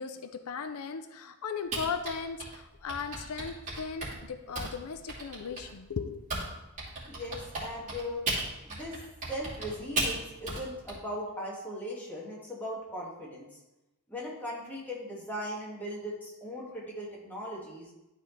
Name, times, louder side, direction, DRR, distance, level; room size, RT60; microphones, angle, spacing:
voice 1, 0.0-6.2, left 5 dB, 85° left, 9 dB, 0.5 m, -37 dB
Typing, 1.7-6.5 6.8-10.9, right 2 dB, 35° right, 2.5 m, -35 dB
voice 2, 7.1-8.2 8.6-9.0 9.3-13.5 14.1-17.9, equal, 10° left, -6 dB, 2.0 m, -38 dB
12.0 x 4.4 x 3.3 m, 0.97 s
head